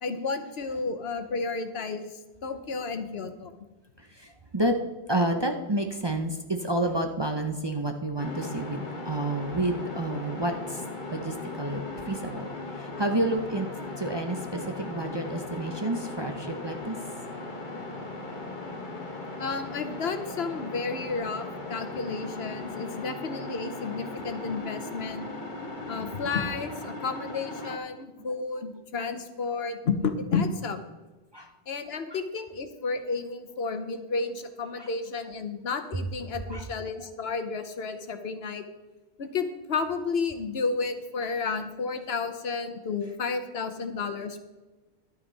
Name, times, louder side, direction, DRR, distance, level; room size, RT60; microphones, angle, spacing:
voice 1, 0.0-3.6 19.4-25.3 25.8-30.8 31.7-38.6 39.2-44.4, left 4 dB, 70° left, 8 dB, 1.1 m, -32 dB
voice 2, 4.0-4.8 5.1-10.8 11.1-13.7 14.0-17.0 27.6-27.7 31.3-31.5 32.1-32.2 34.8-34.9 36.5-36.6, right 1 dB, 25° right, 4 dB, 0.7 m, -30 dB
sound 1, 8.2-27.8, left 2 dB, 45° left, 1.5 m, -38 dB
11.5 x 9.4 x 4.0 m, 1.2 s
omnidirectional pair, 1.1 m